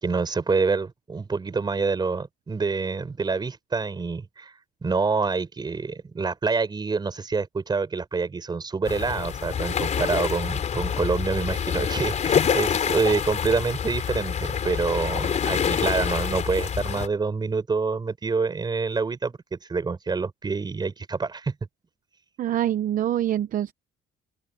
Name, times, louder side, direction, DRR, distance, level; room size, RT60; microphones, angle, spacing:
voice 1, 0.0-4.5 4.8-21.6, right 4 dB, 25° right, 5.6 m, -27 dB
sound 1, 8.9-17.1, left 7 dB, 45° left, 3.8 m, -26 dB
voice 2, 22.4-23.7, right 11 dB, 55° right, 0.9 m, -25 dB
open air
cardioid pair, 110°, 17 cm